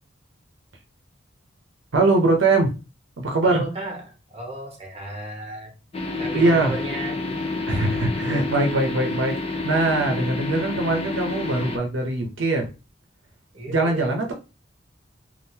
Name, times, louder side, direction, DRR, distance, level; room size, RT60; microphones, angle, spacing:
voice 1, 1.9-2.7 3.2-3.6 6.3-6.7 7.7-12.7 13.7-14.3, right 2 dB, 75° right, 0.7 m, -22 dB
voice 2, 3.4-5.7 6.2-7.2 13.5-14.1, right 2 dB, 35° right, 1.1 m, -34 dB
sound 1, 5.9-11.8, left 3 dB, 30° left, 0.5 m, -29 dB
3.6 x 2.5 x 2.7 m
head